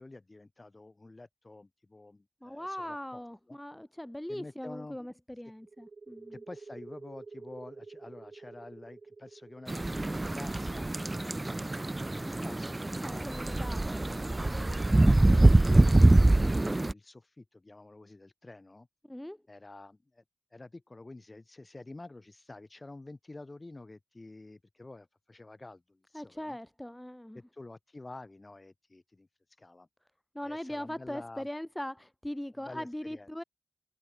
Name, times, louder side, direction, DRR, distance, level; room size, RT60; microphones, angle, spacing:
voice 1, 0.0-3.6 4.3-5.0 6.3-13.3 14.5-18.9 19.5-20.2 20.5-26.6 27.3-29.3 29.6-29.9 30.4-31.5 32.6-33.3, left 2 dB, 35° left, 3.2 m, -49 dB
voice 2, 2.4-6.4 12.2-12.6 13.0-14.5 19.1-19.4 26.1-27.4 30.3-33.4, left 1 dB, 10° left, 0.7 m, -40 dB
sound 1, 5.6-13.0, right 4 dB, 60° right, 3.9 m, -50 dB
sound 2, 9.7-16.9, right 2 dB, 30° right, 0.5 m, -24 dB
cardioid pair, 50°, 0 cm